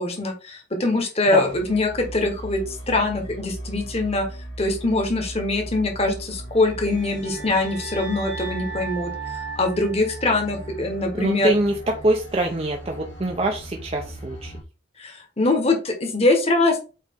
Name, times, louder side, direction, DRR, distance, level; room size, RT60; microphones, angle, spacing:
voice 1, 0.0-2.6 2.9-4.3 4.6-9.1 9.5-11.5 15.0-16.8, left 2 dB, 35° left, 4 dB, 1.4 m, -23 dB
sound 1, 1.4-14.6, right 1 dB, 80° left, 2.3 m, -38 dB
sound 2, 6.6-10.9, right 4 dB, 80° right, 2.9 m, -37 dB
voice 2, 11.1-14.5, right 1 dB, 30° right, 2 dB, 0.7 m, -24 dB
8.2 x 3.2 x 3.8 m, 0.33 s
head